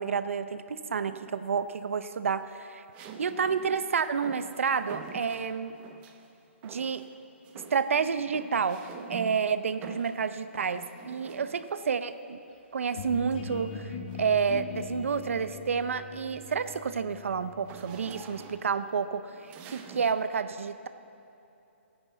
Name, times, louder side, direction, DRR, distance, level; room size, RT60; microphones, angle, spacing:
voice 1, 0.0-2.8 3.2-5.8 6.6-7.1 7.7-8.8 9.1-12.4 12.7-20.9, right 6 dB, 80° right, 12 dB, 0.6 m, -30 dB
sound 1, 1.1-1.6 2.9-6.3 6.6-7.2 7.4-11.9 13.0-14.4 14.9-15.2 15.5-20.3, right 6 dB, 15° right, 0.6 m, -47 dB
sound 2, 12.9-18.6, left 5 dB, 50° left, 1.8 m, -41 dB
17.5 x 9.7 x 4.1 m, 2.8 s
hypercardioid pair, 165°, 7 cm